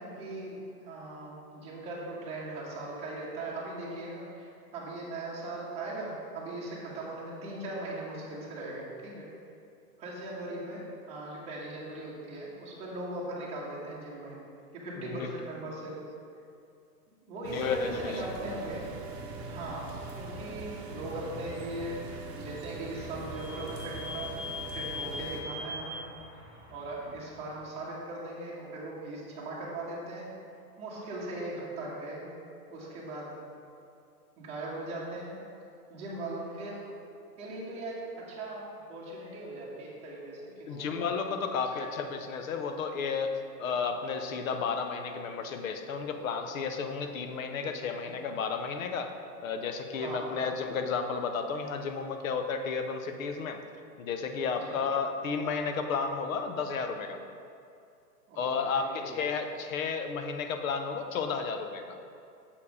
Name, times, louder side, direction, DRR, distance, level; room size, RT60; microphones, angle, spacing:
voice 1, 0.0-9.3 10.0-14.4 14.7-16.0 17.2-18.9 19.4-22.1 22.3-26.0 26.7-30.3 30.8-32.3 32.7-33.5 34.4-35.3 35.9-36.8 37.4-41.0 48.0-48.1 49.9-50.4 54.5-54.7 58.3-58.5 58.7-59.2, right 2 dB, 15° right, -6 dB, 1.2 m, -39 dB
voice 2, 14.9-15.3 17.5-18.2 40.7-49.1 49.4-53.6 54.0-57.2 58.4-62.0, left 5 dB, 55° left, 7 dB, 0.7 m, -32 dB
sound 1, 17.4-25.4, right 3 dB, 40° right, 0.9 m, -42 dB
Vehicle / Squeak, 22.0-27.5, left 3 dB, 15° left, 1.4 m, -42 dB
7.1 x 4.6 x 4.8 m, 2.5 s
hypercardioid pair, 150°, 48 cm